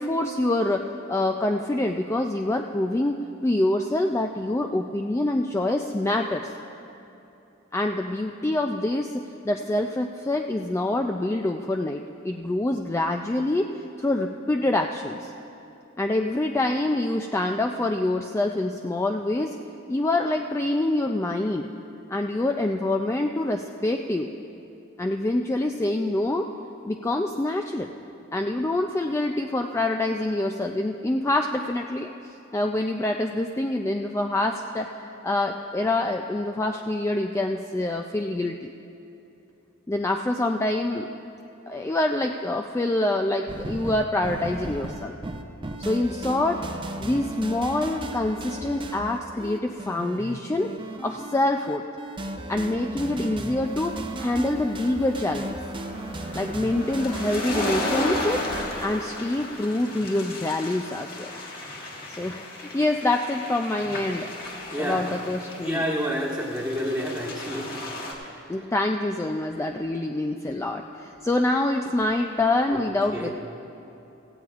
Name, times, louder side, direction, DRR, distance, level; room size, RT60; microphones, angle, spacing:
voice 1, 0.0-3.2 3.4-6.5 7.7-13.7 14.0-15.3 16.0-19.6 19.9-21.7 22.1-24.3 25.0-26.5 26.8-27.9 28.3-38.7 39.9-41.1 41.7-45.1 45.8-46.6 47.0-50.7 51.0-51.8 52.5-55.6 56.3-58.4 58.8-61.3 62.1-64.3 64.8-65.8 68.5-73.3, left 2 dB, 15° left, 3 dB, 0.3 m, -26 dB
sound 1, 43.5-58.7, right 1 dB, 25° right, 0.6 m, -35 dB
sound 2, 53.9-68.1, left 1 dB, 50° left, 1.7 m, -34 dB
voice 2, 64.4-65.1 65.6-67.7 68.0-68.7 72.7-72.8 73.1-73.3, equal, 5° right, -6 dB, 1.4 m, -30 dB
17.0 x 16.0 x 2.5 m, 2.9 s
head